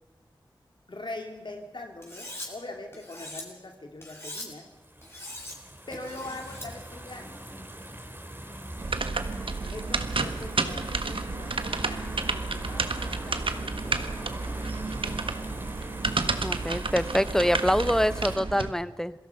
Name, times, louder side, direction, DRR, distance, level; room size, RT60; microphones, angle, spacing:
voice 1, 0.9-4.7 5.9-7.4 9.7-14.7, left 2 dB, 60° left, 3 dB, 2.3 m, -42 dB
Cutlery silverware, 2.0-2.5 2.9-3.4 4.0-4.5 5.0-5.6 5.9-6.7, left 1 dB, 30° left, 6.9 m, -41 dB
sound 1, 4.7-18.4, right 1 dB, 25° right, 4.2 m, -41 dB
sound 2, 8.8-18.7, right 3 dB, 75° right, 1.5 m, -31 dB
voice 2, 16.4-19.1, equal, 5° left, 15 dB, 0.8 m, -25 dB
26.5 x 17.5 x 5.6 m, 1.3 s
cardioid pair, 45°, 9 cm